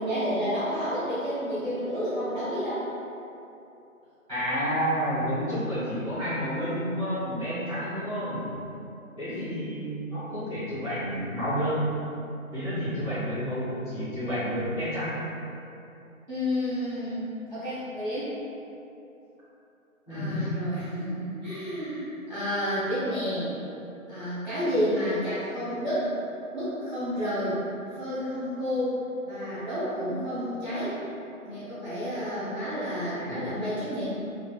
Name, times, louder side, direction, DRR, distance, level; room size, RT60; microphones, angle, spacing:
voice 1, 0.0-2.8 9.3-9.5 16.3-17.2 17.5-18.3 20.1-23.5 24.1-26.1 26.5-27.6 27.9-31.0 31.4-34.0, equal, 35° right, -15 dB, 0.7 m, -30 dB
voice 2, 4.3-8.5 9.2-11.8 12.5-15.2 20.1-20.5 33.2-33.5, equal, 5° right, -20 dB, 0.9 m, -30 dB
2.5 x 2.4 x 3.6 m, 2.9 s
figure-of-eight pair, 155°, 43 cm